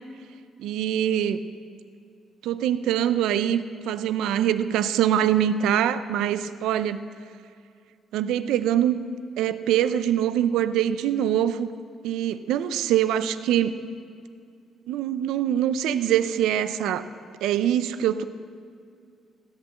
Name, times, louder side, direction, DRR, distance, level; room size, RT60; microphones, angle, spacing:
voice 1, 0.6-1.5 2.4-7.0 8.1-9.0 9.4-11.7 12.0-13.8 14.9-17.0 17.4-18.2, right 10 dB, 90° right, 12 dB, 0.6 m, -24 dB
16.0 x 11.0 x 7.8 m, 2.3 s
cardioid pair, 90°, 0 cm